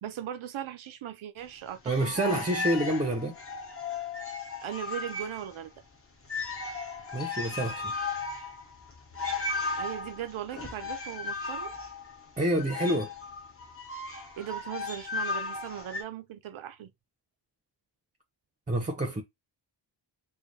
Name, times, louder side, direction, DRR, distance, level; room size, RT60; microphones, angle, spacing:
voice 1, 0.0-2.4 4.6-5.7 9.8-11.7 14.4-16.9, right 10 dB, 90° right, 0.7 m, -38 dB
sound 1, 1.7-5.6 5.9-6.0 6.2-16.0, left 4 dB, 30° left, 0.8 m, -36 dB
voice 2, 1.9-3.4 7.1-8.0 12.4-13.1 18.7-19.2, right 1 dB, 15° right, 0.6 m, -28 dB
3.2 x 2.2 x 3.9 m
wide cardioid pair, 110°, 46 cm